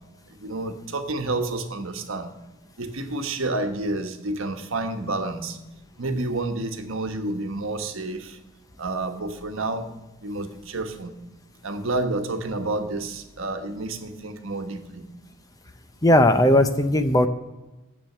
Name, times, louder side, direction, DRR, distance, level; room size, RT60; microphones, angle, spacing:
voice 1, 0.4-2.3 2.8-5.6 6.0-8.4 8.8-9.9 10.2-11.1 11.6-15.1, right 2 dB, 70° right, 6 dB, 1.2 m, -29 dB
voice 2, 16.0-17.3, left 1 dB, 15° left, 9 dB, 0.6 m, -17 dB
10.0 x 7.1 x 6.6 m, 1.1 s
head